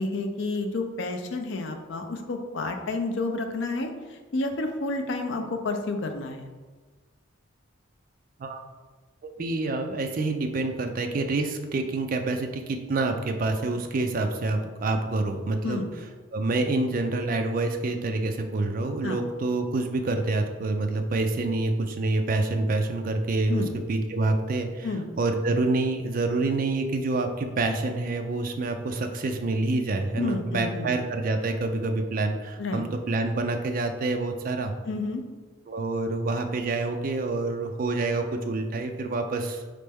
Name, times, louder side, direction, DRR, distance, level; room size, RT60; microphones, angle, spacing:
voice 1, 0.0-6.5 15.6-15.9 19.0-19.2 23.5-23.7 24.8-25.0 30.2-30.9 32.6-32.8 34.9-35.2, left 2 dB, 60° left, 4 dB, 0.5 m, -30 dB
voice 2, 9.4-15.8 16.3-23.6 23.9-24.9 25.2-34.7 35.7-39.6, right 2 dB, 40° right, 5 dB, 0.3 m, -27 dB
4.1 x 3.3 x 3.4 m, 1.3 s
head